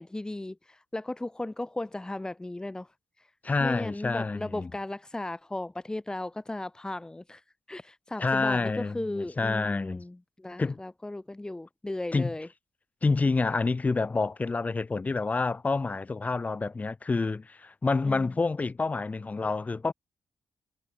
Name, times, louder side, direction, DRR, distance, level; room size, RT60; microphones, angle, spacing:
voice 1, 0.0-2.9 3.6-7.4 7.7-12.5 18.0-18.3, left 2 dB, 15° left, 1.5 m, -36 dB
voice 2, 3.4-4.7 8.2-10.0 10.6-10.8 12.1-12.3 13.0-19.9, left 3 dB, 35° left, 2.1 m, -28 dB
supercardioid pair, 60°, 5 cm